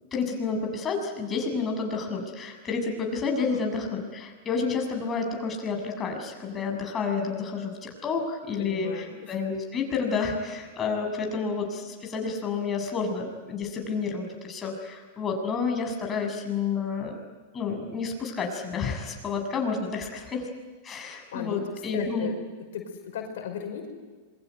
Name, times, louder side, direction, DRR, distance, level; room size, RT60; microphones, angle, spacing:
voice 1, 0.1-17.2 17.5-20.5 20.8-22.3, left 5 dB, 20° left, 3 dB, 7.0 m, -30 dB
voice 2, 8.6-9.4 13.6-13.7 21.3-22.3 22.7-23.9, left 8 dB, 75° left, 4 dB, 5.4 m, -36 dB
27.0 x 23.5 x 9.4 m, 1.4 s
hypercardioid pair, 125°, 0 cm